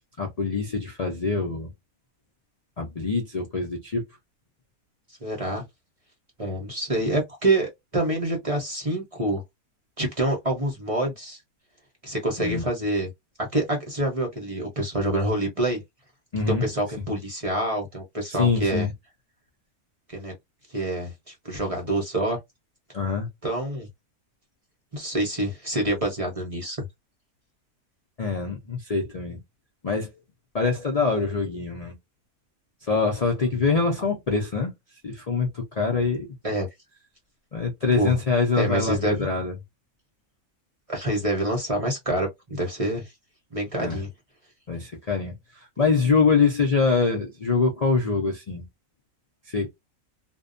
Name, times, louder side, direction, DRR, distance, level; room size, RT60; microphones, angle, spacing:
voice 1, 0.2-1.7 2.8-4.0 12.4-12.6 16.3-16.7 18.4-18.9 22.9-23.3 28.2-29.4 29.8-30.1 30.5-31.9 32.9-34.7 35.0-36.3 37.5-39.5 43.8-44.0 44.7-48.6 49.5-49.7, left 4 dB, 70° left, 0.3 m, -24 dB
voice 2, 5.2-5.6 6.4-9.4 10.0-11.4 12.0-13.1 13.4-15.8 16.5-18.9 20.1-20.3 20.7-22.4 23.4-23.9 24.9-26.9 33.5-33.6 36.4-36.7 38.0-38.2 38.5-39.3 40.9-43.1 43.5-44.1 45.8-45.9, right 1 dB, 30° right, 0.6 m, -27 dB
2.6 x 2.1 x 2.5 m
omnidirectional pair, 1.6 m